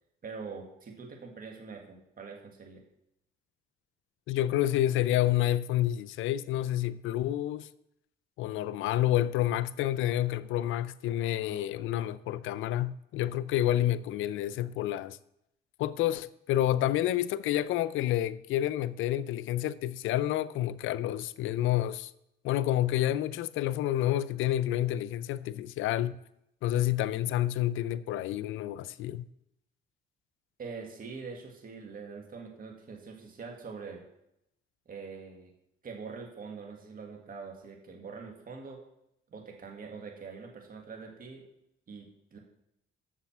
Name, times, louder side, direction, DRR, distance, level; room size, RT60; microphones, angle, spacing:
voice 1, 0.2-2.8 30.6-34.0 34.9-35.5 35.8-38.8 39.3-41.4 41.9-42.4, right 5 dB, 45° right, 1.9 m, -44 dB
voice 2, 4.3-7.7 8.4-15.2 15.8-22.1 22.4-26.2 26.6-29.3, left 13 dB, 90° left, 0.5 m, -29 dB
7.5 x 6.6 x 7.2 m
cardioid pair, 90°, 20 cm